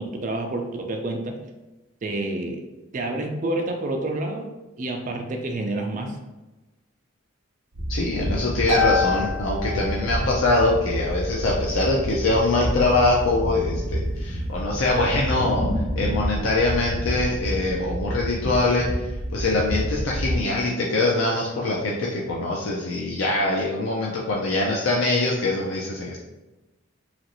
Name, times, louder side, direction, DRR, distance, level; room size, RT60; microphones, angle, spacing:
voice 1, 0.0-1.4 2.0-2.6 2.9-4.5 4.8-6.2, right 2 dB, 40° right, 3 dB, 0.4 m, -28 dB
sound 1, 7.7-20.4, equal, 65° right, 0.7 m, -29 dB
voice 2, 7.9-15.7 16.0-19.1 19.3-26.2, left 2 dB, 75° left, -3 dB, 0.5 m, -23 dB
Harp, 8.7-10.6, left 4 dB, 35° left, 1.0 m, -26 dB
3.0 x 2.5 x 2.9 m, 1.1 s
head